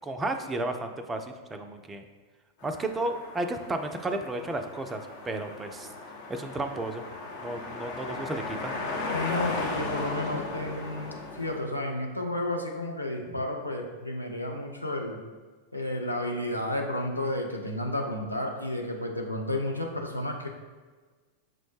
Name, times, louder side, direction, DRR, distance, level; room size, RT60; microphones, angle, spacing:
voice 1, 0.0-1.3 1.5-2.0 2.6-5.9 6.3-7.1 7.4-8.7 13.3-13.4, right 2 dB, 15° right, 6 dB, 0.3 m, -33 dB
sound 1, 2.6-11.6, left 2 dB, 55° left, 0.7 m, -36 dB
voice 2, 9.1-15.2 15.7-20.5, left 1 dB, 85° left, 1 dB, 0.5 m, -32 dB
6.1 x 2.0 x 3.1 m, 1.4 s
figure-of-eight pair, 90°, 0 cm